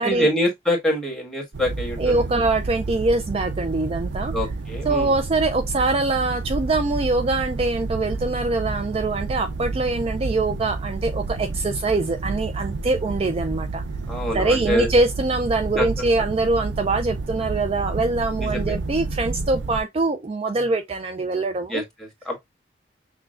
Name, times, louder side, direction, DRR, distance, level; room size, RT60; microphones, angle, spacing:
voice 1, 0.0-2.3 4.3-5.1 14.1-14.9 15.8-15.9 18.4-18.8 21.7-22.4, equal, 5° left, 1.5 m, -25 dB
sound 1, 1.5-19.8, right 3 dB, 90° right, 0.5 m, -30 dB
voice 2, 2.0-4.3 4.8-13.8 14.3-21.8, right 2 dB, 35° right, 0.4 m, -23 dB
6.0 x 2.3 x 2.3 m
head